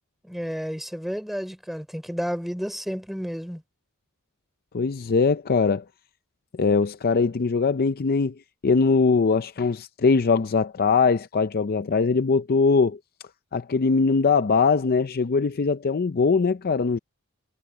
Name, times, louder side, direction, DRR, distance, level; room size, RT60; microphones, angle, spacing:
voice 1, 0.2-3.6, equal, ahead, 4.8 m, -31 dB
voice 2, 4.7-5.8 6.6-8.3 8.6-13.0 13.5-17.0, left 4 dB, 45° left, 0.5 m, -21 dB
head